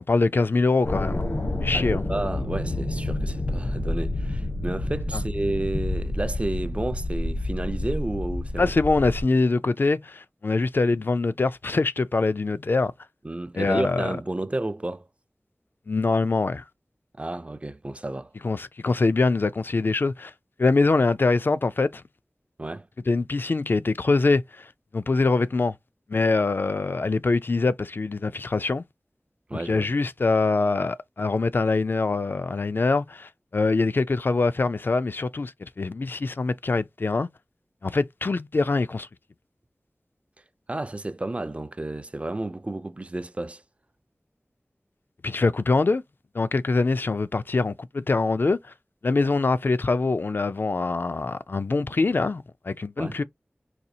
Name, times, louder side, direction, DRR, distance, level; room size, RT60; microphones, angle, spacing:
voice 1, 0.1-1.3 1.6-2.0 5.1-5.2 8.6-12.9 13.6-14.1 15.9-16.6 18.4-20.3 20.6-22.0 23.1-24.7 24.9-25.7 26.1-28.8 29.7-37.3 37.8-39.1 45.2-46.0 46.3-48.6 49.0-53.2, left 3 dB, 60° left, 0.3 m, -24 dB
sound 1, 0.8-9.2, left 1 dB, 75° left, 0.9 m, -29 dB
voice 2, 1.7-8.7 13.2-15.1 17.2-18.3 22.6-22.9 29.5-29.9 40.7-43.6 53.0-53.2, right 2 dB, 30° right, 0.4 m, -31 dB
4.1 x 2.4 x 2.6 m
wide cardioid pair, 50°, 4 cm